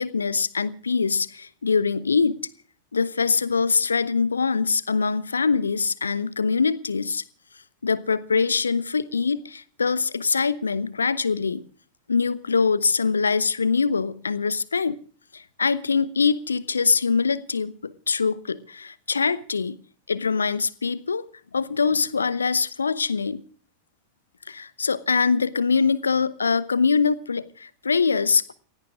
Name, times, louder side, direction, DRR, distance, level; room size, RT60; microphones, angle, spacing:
voice 1, 0.0-2.4 2.9-7.2 7.8-11.7 12.1-15.0 15.3-19.8 20.1-21.2 21.5-23.4 24.5-28.5, left 5 dB, 75° left, 0.8 m, -23 dB
30.0 x 17.0 x 2.4 m
figure-of-eight pair, 90°, 0 cm